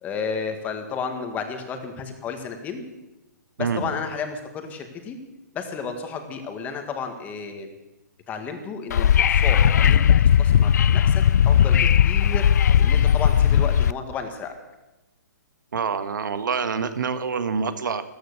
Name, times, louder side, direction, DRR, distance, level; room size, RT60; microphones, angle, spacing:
voice 1, 0.0-2.8 3.6-5.2 5.5-7.7 8.3-12.5 12.8-14.5, left 5 dB, 15° left, 6 dB, 1.7 m, -32 dB
Wind / Subway metro underground, 8.9-13.9, left 9 dB, 60° left, 0.5 m, -17 dB
voice 2, 15.7-18.0, right 5 dB, 75° right, 10 dB, 1.7 m, -26 dB
14.0 x 14.0 x 6.8 m, 1.0 s
hypercardioid pair, 155°, 10 cm